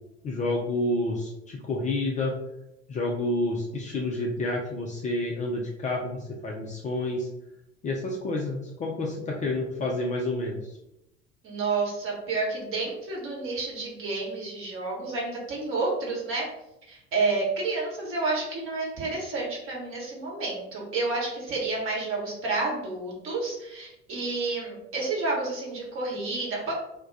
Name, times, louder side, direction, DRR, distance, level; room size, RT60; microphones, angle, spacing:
voice 1, 0.2-2.3 2.9-7.3 7.8-10.7, left 2 dB, 25° left, -2 dB, 0.4 m, -29 dB
voice 2, 11.4-16.5 16.9-26.7, right 3 dB, 40° right, -3 dB, 1.1 m, -30 dB
2.2 x 2.1 x 3.8 m, 0.87 s
figure-of-eight pair, 65°, 33 cm